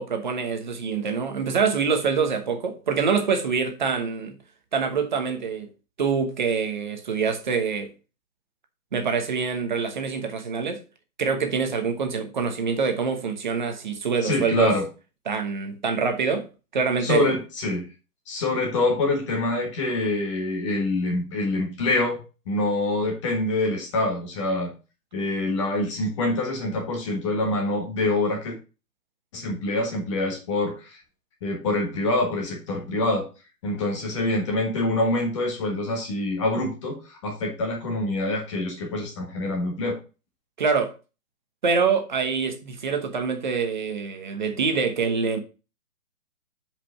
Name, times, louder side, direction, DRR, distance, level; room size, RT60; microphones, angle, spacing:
voice 1, 0.0-4.3 4.7-5.7 6.0-7.9 8.9-10.8 11.2-14.7 15.3-16.5 16.7-17.3 40.6-40.9 41.6-45.4, right 5 dB, 30° right, 1.1 m, -25 dB
voice 2, 14.2-14.8 17.0-17.8 18.3-22.2 22.5-24.7 25.1-28.6 29.3-31.0 31.4-33.3 33.6-40.0, left 2 dB, 20° left, 1.5 m, -25 dB
6.0 x 5.2 x 5.6 m
hypercardioid pair, 170°, 46 cm